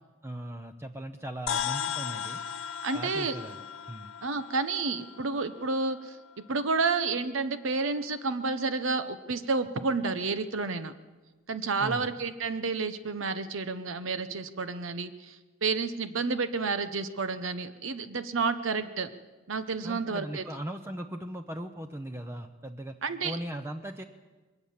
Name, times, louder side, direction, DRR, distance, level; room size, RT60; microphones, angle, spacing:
voice 1, 0.2-2.4 2.9-4.1 11.8-12.1 19.8-23.0 23.2-24.0, right 1 dB, 15° right, 6 dB, 0.7 m, -38 dB
sound 1, 1.5-6.1, left 8 dB, 80° left, 1.3 m, -36 dB
voice 2, 2.8-3.3 4.2-6.2 6.5-10.9 11.5-15.4 15.6-19.1 19.5-20.4 23.0-23.4, right 4 dB, 70° right, 11 dB, 0.9 m, -30 dB
21.5 x 18.0 x 7.3 m, 1.3 s
head